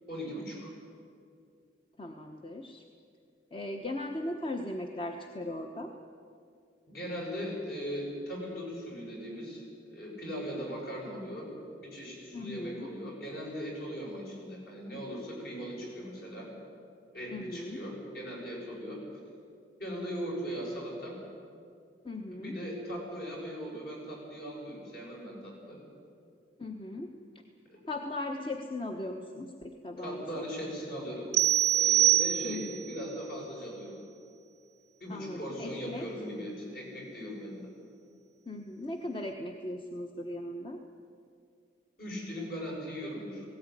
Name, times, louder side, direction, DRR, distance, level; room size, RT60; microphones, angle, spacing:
voice 1, 0.1-0.7 6.9-9.6 9.9-11.5 11.8-16.5 17.1-19.0 19.8-21.2 22.3-25.8 27.7-27.8 30.0-31.3 31.7-34.0 35.0-37.7 42.0-43.5, equal, 55° left, -2 dB, 7.0 m, -39 dB
voice 2, 2.0-2.8 3.5-5.9 12.3-12.9 17.3-17.8 22.0-22.5 26.6-27.1 27.9-30.4 32.4-33.0 35.1-36.1 38.5-40.8, left 1 dB, 30° left, 3 dB, 1.0 m, -38 dB
sound 1, 31.3-32.9, right 13 dB, 35° right, 0.5 m, -24 dB
18.0 x 17.0 x 9.7 m, 2.4 s
head